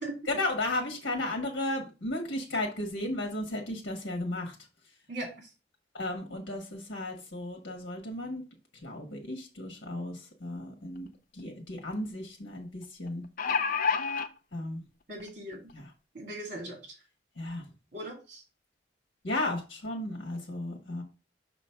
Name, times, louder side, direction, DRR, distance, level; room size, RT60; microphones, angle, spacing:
voice 1, 0.3-4.5 5.9-8.4 8.8-11.1 11.3-13.3 14.5-14.8 15.7-15.9 17.4-17.6 19.2-21.0, left 2 dB, 85° left, 2 dB, 1.5 m, -34 dB
sound 1, 11.0-11.1 11.4-11.5 13.1-14.3 15.2-15.3 15.7-15.8, left 5 dB, 50° left, 0.6 m, -28 dB
voice 2, 15.1-15.6 16.1-16.8 17.9-18.4, right 1 dB, 50° right, 1 dB, 1.9 m, -38 dB
6.1 x 3.1 x 5.7 m, 0.31 s
head